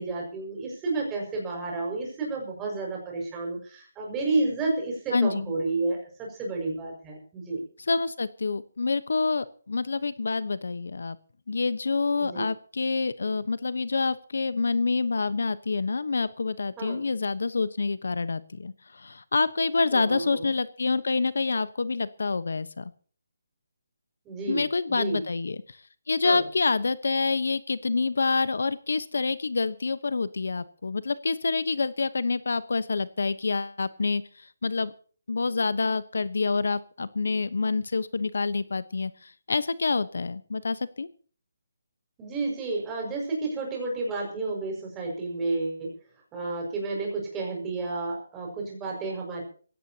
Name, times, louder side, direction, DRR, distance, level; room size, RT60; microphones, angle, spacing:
voice 1, 0.0-7.6 12.2-12.5 16.8-17.0 19.9-20.5 24.3-24.6 24.9-25.2 26.2-26.4 42.2-45.9 46.3-49.4, right 3 dB, 10° right, -1 dB, 5.9 m, -31 dB
voice 2, 5.1-5.5 7.9-11.2 11.5-22.9 24.5-25.6 26.1-34.2 34.6-34.9 35.3-41.1, left 4 dB, 70° left, 15 dB, 1.1 m, -27 dB
22.0 x 17.0 x 2.9 m, 0.43 s
hypercardioid pair, 175°, 0 cm